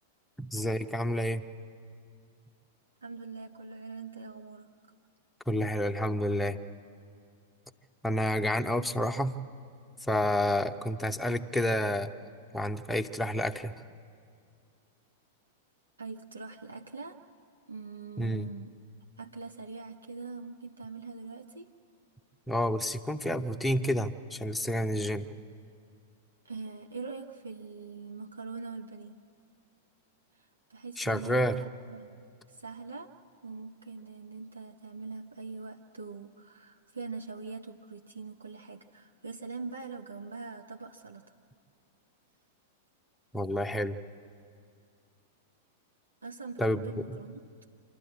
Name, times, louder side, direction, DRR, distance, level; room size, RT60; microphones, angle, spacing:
voice 1, 0.4-1.4 5.5-6.6 8.0-9.4 10.0-12.1 12.5-13.7 18.2-18.5 22.5-25.3 31.0-31.6 43.3-44.0 46.6-46.8, equal, 5° left, 5 dB, 0.7 m, -29 dB
voice 2, 3.0-4.9 16.0-17.2 17.7-18.8 19.2-21.7 26.4-29.1 30.3-32.2 32.5-33.1 33.4-41.3 46.2-47.4, right 4 dB, 75° right, 4 dB, 0.7 m, -43 dB
27.0 x 12.0 x 8.8 m, 2.3 s
figure-of-eight pair, 95°, 0 cm